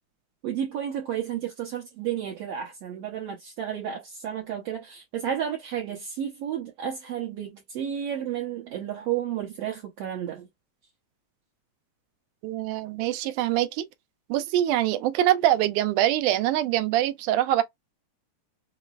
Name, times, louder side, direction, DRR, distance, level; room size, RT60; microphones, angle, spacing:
voice 1, 0.4-10.5, right 9 dB, 65° right, 1.6 m, -32 dB
voice 2, 12.4-13.9 14.3-17.6, right 13 dB, 85° right, 2.1 m, -24 dB
5.8 x 2.0 x 2.3 m
omnidirectional pair, 3.6 m